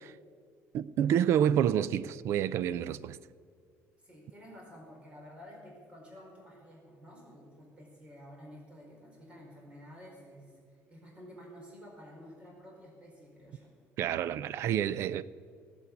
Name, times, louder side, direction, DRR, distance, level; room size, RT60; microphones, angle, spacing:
voice 1, 0.7-3.2 14.0-15.2, right 9 dB, 60° right, 0.4 m, -28 dB
voice 2, 4.0-13.7, equal, 20° right, 4.7 m, -51 dB
18.5 x 8.2 x 8.4 m
cardioid pair, 150°, 5 cm